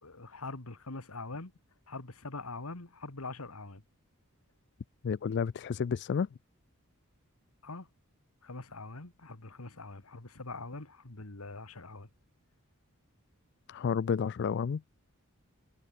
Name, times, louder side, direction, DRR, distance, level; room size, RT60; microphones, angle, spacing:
voice 1, 0.0-1.5 1.9-3.8 7.6-7.9 8.4-12.1, left 3 dB, 80° left, 2.1 m, -43 dB
voice 2, 5.0-6.3 13.7-14.8, left 6 dB, 50° left, 0.3 m, -31 dB
head